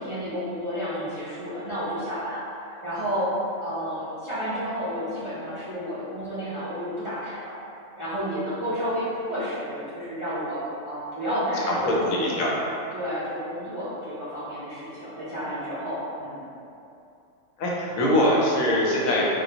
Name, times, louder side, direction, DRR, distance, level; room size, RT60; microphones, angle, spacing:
voice 1, 0.0-2.4 2.7-3.3 3.6-7.5 7.9-12.3 12.9-16.4, equal, 35° right, -13 dB, 0.5 m, -31 dB
voice 2, 11.7-12.5 17.6-19.2, left 1 dB, 85° left, -4 dB, 1.0 m, -22 dB
3.6 x 2.2 x 2.7 m, 2.7 s
omnidirectional pair, 1.3 m